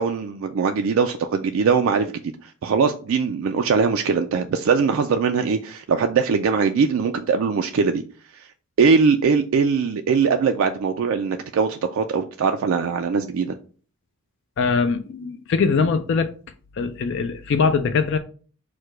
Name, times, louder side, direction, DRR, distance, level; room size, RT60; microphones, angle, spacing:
voice 1, 0.0-2.1 2.4-8.0 8.3-8.5 8.8-13.6, right 5 dB, 60° right, 0.3 m, -21 dB
voice 2, 14.6-16.3 16.8-18.2, left 5 dB, 55° left, 0.3 m, -22 dB
4.7 x 2.2 x 4.5 m
head